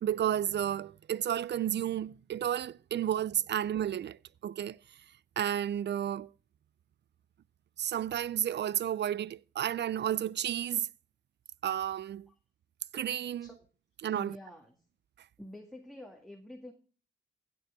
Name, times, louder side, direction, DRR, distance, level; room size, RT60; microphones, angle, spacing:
voice 1, 0.0-4.8 5.4-6.3 7.8-10.9 11.6-12.3 12.9-13.5 14.0-14.4, right 10 dB, 55° right, 0.4 m, -32 dB
voice 2, 14.1-14.8 15.4-16.7, left 1 dB, ahead, 1.9 m, -47 dB
15.5 x 7.6 x 3.6 m
supercardioid pair, 45°, 21 cm